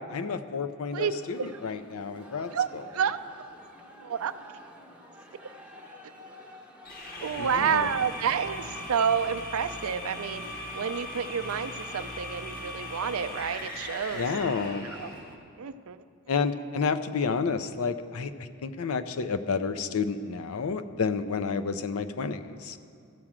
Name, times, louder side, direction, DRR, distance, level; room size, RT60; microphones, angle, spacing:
voice 1, 0.1-2.5 7.4-7.9 14.1-14.9 16.3-22.8, left 5 dB, 70° left, 10 dB, 0.5 m, -30 dB
sound 1, 0.9-15.4, left 1 dB, 5° right, 0.7 m, -51 dB
voice 2, 2.5-3.2 4.0-4.3 7.2-14.6 15.0-15.1 15.6-16.0, right 7 dB, 70° right, 12 dB, 0.4 m, -29 dB
sound 2, 6.8-15.3, left 1 dB, 40° left, 1.3 m, -39 dB
14.5 x 4.9 x 7.4 m, 2.3 s
head